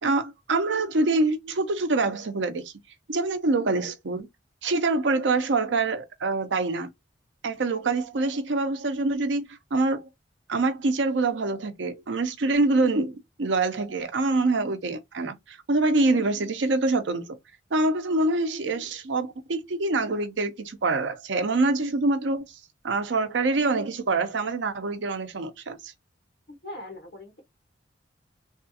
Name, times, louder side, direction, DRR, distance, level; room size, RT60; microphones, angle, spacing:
voice 1, 0.0-2.7 3.1-4.3 4.6-6.9 7.4-10.1 10.5-17.3 17.7-22.4 22.8-25.9, right 3 dB, 80° right, 0.6 m, -25 dB
voice 2, 26.5-27.4, left 1 dB, 60° left, 1.3 m, -41 dB
3.3 x 2.4 x 2.7 m
head